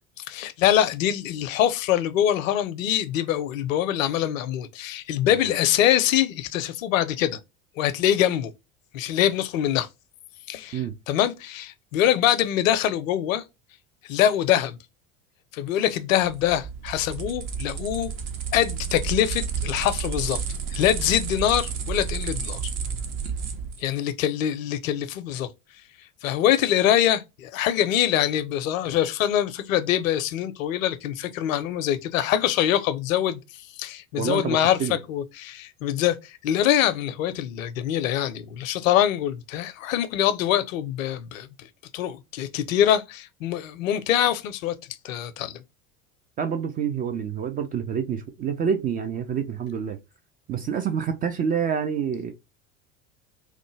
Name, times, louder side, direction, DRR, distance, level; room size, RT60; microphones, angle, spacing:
voice 1, 0.3-7.4 7.8-8.5 8.9-9.9 10.5-13.4 14.1-14.8 15.5-18.1 18.5-20.4 20.7-22.6 23.8-25.5 26.2-33.4 33.8-41.7 41.9-44.7 45.0-45.6, left 11 dB, 70° left, 0.6 m, -24 dB
sound 1, 16.2-23.8, right 6 dB, 40° right, 0.7 m, -31 dB
voice 2, 34.1-35.0 46.4-50.0 50.5-52.3, right 7 dB, 25° right, 0.3 m, -27 dB
3.1 x 2.1 x 3.2 m
hypercardioid pair, 75°, 41 cm